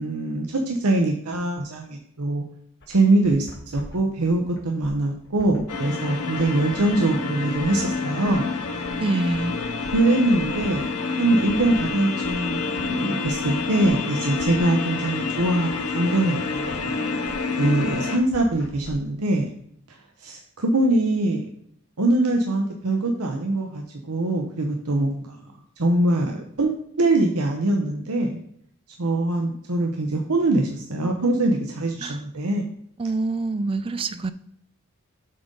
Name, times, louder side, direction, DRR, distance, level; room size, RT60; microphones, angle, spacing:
voice 1, 0.0-2.4 2.9-8.5 9.9-10.9 11.2-16.9 17.6-19.5 19.9-21.5 22.0-25.4 25.8-28.4 29.0-32.6, right 2 dB, 85° right, 2 dB, 0.9 m, -23 dB
sound 1, 2.8-18.9, left 1 dB, 50° left, 1.3 m, -44 dB
sound 2, 5.7-18.2, left 4 dB, 90° left, 0.9 m, -28 dB
voice 2, 9.0-9.6 32.0-32.2 33.0-34.3, right 3 dB, 25° right, 13 dB, 0.3 m, -26 dB
7.8 x 3.8 x 5.2 m, 0.70 s
head